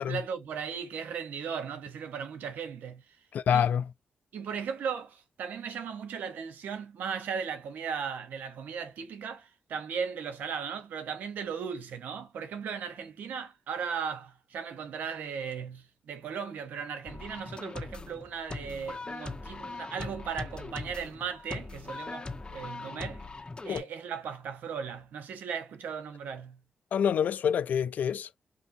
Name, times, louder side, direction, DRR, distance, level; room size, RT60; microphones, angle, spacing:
voice 1, 0.0-3.0 3.5-3.7 4.3-23.3 23.6-26.6, right 6 dB, 85° right, 0.7 m, -37 dB
voice 2, 3.3-3.8 23.7-23.9 26.9-28.3, left 8 dB, 75° left, 0.3 m, -27 dB
sound 1, 17.0-23.8, left 3 dB, 35° left, 0.9 m, -40 dB
5.4 x 2.6 x 2.5 m
supercardioid pair, 50°, 3 cm